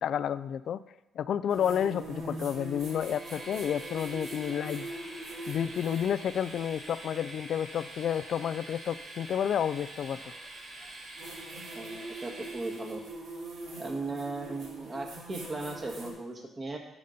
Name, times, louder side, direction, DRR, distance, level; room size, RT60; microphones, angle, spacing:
voice 1, 0.0-0.8 1.2-4.9 5.5-10.2, left 9 dB, 65° left, 15 dB, 0.3 m, -30 dB
sound 1, 1.5-7.0 9.0-9.1 11.2-16.1, right 1 dB, 80° right, 2.4 m, -43 dB
Train, 2.7-13.2, right 2 dB, 50° right, 2.4 m, -45 dB
voice 2, 11.7-13.0 13.8-16.8, right 3 dB, 30° right, 2 dB, 1.7 m, -37 dB
12.0 x 4.1 x 5.2 m, 0.94 s
cardioid pair, 90°, 0 cm